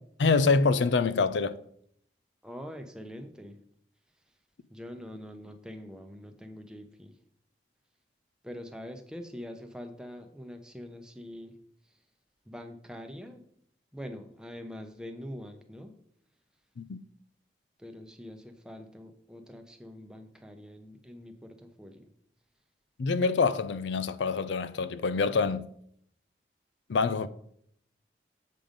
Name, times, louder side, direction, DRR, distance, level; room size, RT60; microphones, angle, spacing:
voice 1, 0.2-1.6 16.8-17.0 23.0-25.7 26.9-27.3, left 4 dB, 85° left, 0.5 m, -26 dB
voice 2, 2.4-3.6 4.7-7.1 8.4-11.5 12.5-13.4 13.9-15.9 17.8-22.1, equal, 5° right, 0.7 m, -44 dB
7.6 x 5.5 x 5.1 m
head